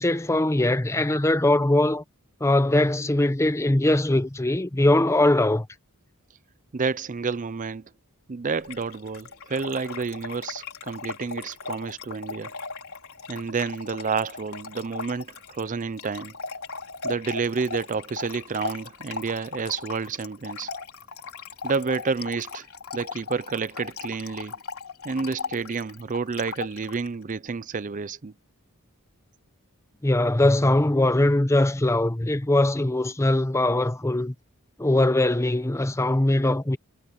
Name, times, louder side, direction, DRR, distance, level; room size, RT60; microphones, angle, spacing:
voice 1, 0.0-2.0 2.4-5.7 30.0-34.3 34.8-36.8, left 1 dB, 15° left, 0.7 m, -21 dB
voice 2, 6.7-7.9 8.3-12.5 13.3-16.4 17.0-20.7 21.6-22.7 22.9-24.5 25.0-28.3, right 5 dB, 35° right, 0.5 m, -29 dB
Trickle dribble / Fill (with liquid), 8.6-27.1, left 4 dB, 70° left, 5.0 m, -38 dB
head